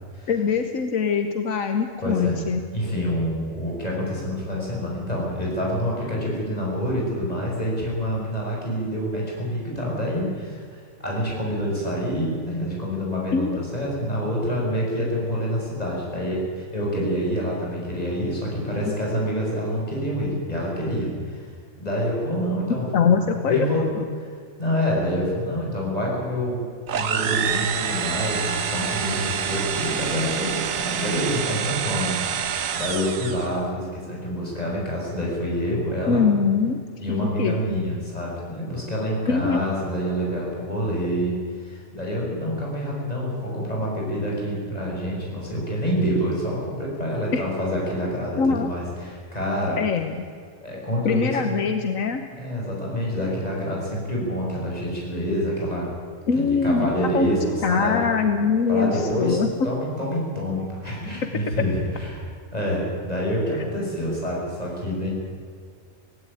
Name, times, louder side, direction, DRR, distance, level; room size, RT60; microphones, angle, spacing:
voice 1, 0.3-2.6 13.3-13.6 18.9-19.0 22.4-22.5 22.9-24.0 36.1-36.8 37.1-37.6 39.3-39.6 47.3-47.4 48.4-48.7 49.8-50.1 51.0-52.2 56.3-57.3 57.6-59.5, left 6 dB, 75° left, 7 dB, 1.5 m, -23 dB
voice 2, 2.0-2.4 2.7-10.6 11.0-21.5 21.8-23.2 23.5-23.8 24.2-24.3 24.6-26.6 26.9-36.2 37.0-49.8 50.6-51.5 52.3-55.9 56.3-58.1 58.7-62.2 62.5-65.1, equal, 30° left, -3 dB, 6.7 m, -27 dB
sound 1, 26.9-33.6, right 8 dB, 80° right, 1.4 m, -27 dB
17.0 x 17.0 x 9.9 m, 2.1 s
omnidirectional pair, 1.4 m